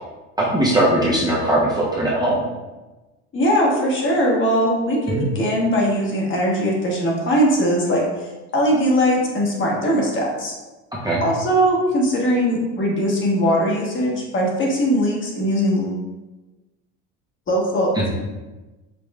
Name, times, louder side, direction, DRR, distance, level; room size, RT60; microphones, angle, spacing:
voice 1, 0.4-2.4 5.1-5.3 10.9-11.2 17.9-18.1, right 1 dB, 10° right, -5 dB, 0.7 m, -20 dB
voice 2, 3.3-10.5 11.2-16.0 17.5-18.1, equal, 35° left, -2 dB, 1.2 m, -20 dB
5.1 x 3.0 x 2.3 m, 1.1 s
supercardioid pair, 95°, 34 cm